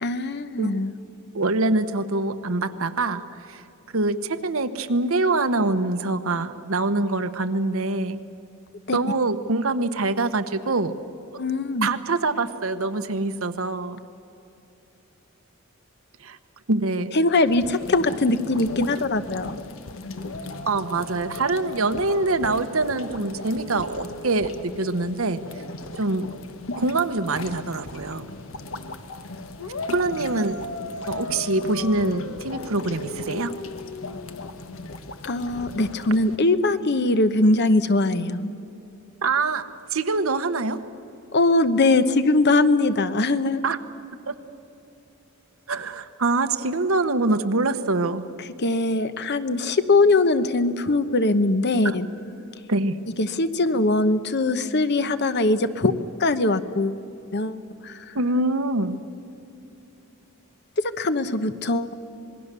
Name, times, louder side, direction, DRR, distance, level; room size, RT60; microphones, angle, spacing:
voice 1, 0.0-0.9 8.9-9.0 11.4-11.9 17.1-19.6 35.2-38.5 41.3-43.6 48.6-52.0 53.2-55.9 56.2-57.0 57.3-58.0 60.8-61.9, left 2 dB, 55° left, 11 dB, 1.0 m, -21 dB
voice 2, 1.3-3.6 3.9-8.2 8.9-10.9 11.8-14.0 16.2-16.4 16.7-17.1 20.7-25.4 26.0-26.3 26.8-28.3 29.9-30.6 31.1-33.5 39.2-39.6 39.9-40.8 43.6-43.8 44.3-44.4 45.7-48.2 51.8-51.9 52.7-53.0 58.1-59.0, right 2 dB, 80° right, 9 dB, 1.1 m, -24 dB
sound 1, 17.4-36.4, left 2 dB, 70° left, 1.2 m, -36 dB
26.5 x 20.5 x 6.9 m, 2.9 s
head